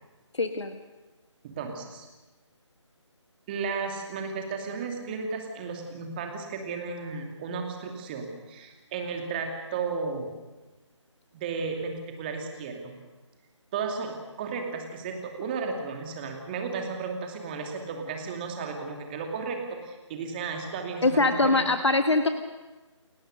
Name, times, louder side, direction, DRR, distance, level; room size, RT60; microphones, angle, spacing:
voice 1, 0.3-0.8 21.0-22.3, left 2 dB, 65° left, 8 dB, 1.4 m, -23 dB
voice 2, 1.4-2.1 3.5-10.3 11.3-13.0 13.7-21.7, right 5 dB, 20° right, 3 dB, 2.5 m, -34 dB
29.0 x 17.0 x 6.5 m, 1.2 s
figure-of-eight pair, 150°, 16 cm